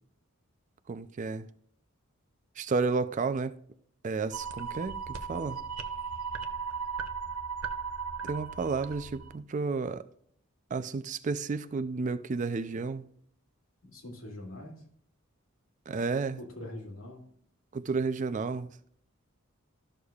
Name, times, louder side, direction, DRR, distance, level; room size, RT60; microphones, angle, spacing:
voice 1, 0.9-1.5 2.6-3.5 4.0-5.6 8.2-10.1 10.7-13.1 15.9-16.4 17.7-18.7, right 4 dB, 35° right, 0.4 m, -32 dB
sound 1, 4.3-9.4, right 6 dB, 85° right, 0.7 m, -37 dB
voice 2, 13.8-14.8 16.4-17.3, left 1 dB, 75° left, 2.3 m, -43 dB
12.5 x 6.7 x 2.3 m
head